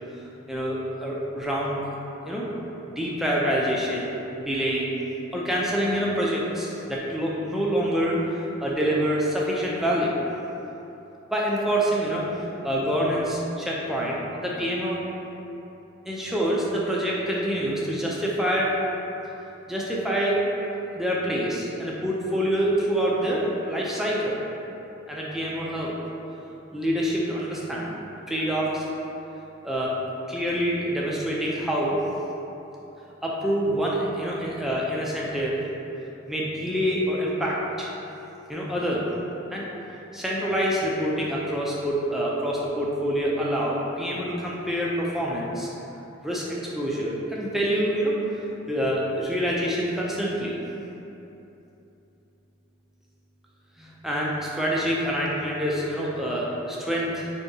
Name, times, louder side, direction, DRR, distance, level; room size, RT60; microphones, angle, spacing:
voice 1, 0.1-1.9 2.3-2.5 3.0-5.0 5.3-10.1 11.3-12.3 12.6-15.0 16.1-18.8 19.7-20.4 20.9-24.4 25.1-25.9 26.7-28.0 28.3-28.8 29.6-30.0 30.3-32.0 33.2-35.6 36.3-37.9 38.5-39.1 39.5-39.7 40.1-45.7 46.2-48.1 48.7-50.6 53.8-57.3, equal, ahead, -5 dB, 0.4 m, -26 dB
4.5 x 2.7 x 2.7 m, 3.0 s
head